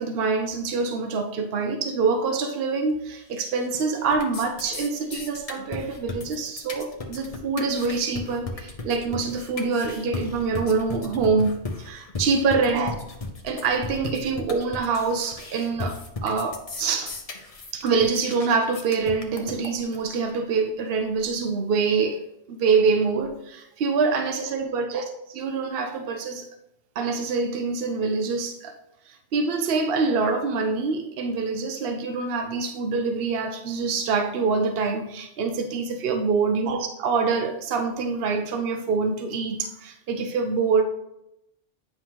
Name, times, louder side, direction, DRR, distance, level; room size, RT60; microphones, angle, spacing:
voice 1, 0.0-12.9 13.4-17.2 17.7-22.2 22.5-25.0 25.3-26.5 27.0-28.8 29.1-40.8, right 4 dB, 65° right, 5 dB, 0.9 m, -25 dB
sound 1, 3.3-3.8 4.0-20.0, left 3 dB, 40° left, 0.9 m, -36 dB
8.7 x 5.5 x 3.0 m, 0.83 s
omnidirectional pair, 1.1 m